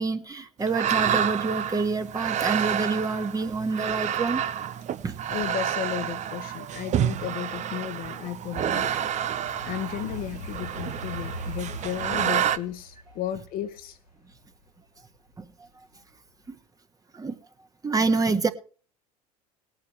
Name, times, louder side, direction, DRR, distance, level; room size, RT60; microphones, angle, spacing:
voice 1, 0.0-4.4 5.0-5.2 15.4-15.7 16.5-16.6 17.1-17.4 17.8-18.5, right 4 dB, 20° right, 1.6 m, -27 dB
sound 1, 0.6-12.6, right 9 dB, 35° right, 0.9 m, -29 dB
voice 2, 5.3-9.1 9.6-14.0, left 10 dB, 45° left, 1.4 m, -34 dB
sound 2, 6.6-15.7 16.1-16.5, equal, 90° left, 3.8 m, -42 dB
20.0 x 9.1 x 3.2 m
figure-of-eight pair, 70°, 20 cm